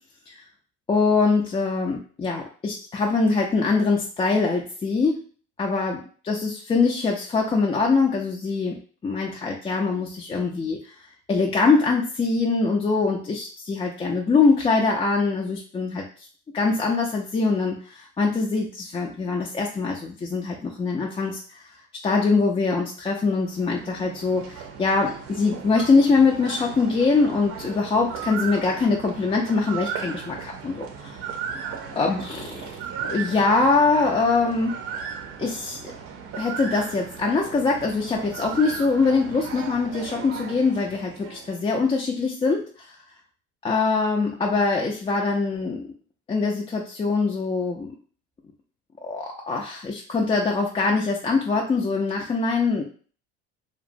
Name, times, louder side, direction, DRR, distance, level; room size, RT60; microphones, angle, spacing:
voice 1, 0.9-5.2 5.6-6.0 6.2-10.8 11.3-16.0 16.5-21.6 22.0-31.1 32.0-32.7 33.1-34.7 35.4-35.8 36.4-42.9 43.6-45.9 46.3-47.9 49.0-52.8, left 4 dB, 20° left, -1 dB, 0.4 m, -23 dB
sound 1, 23.3-41.7, right 7 dB, 50° right, 0.6 m, -36 dB
2.8 x 2.1 x 2.5 m, 0.40 s
supercardioid pair, 95°, 30 cm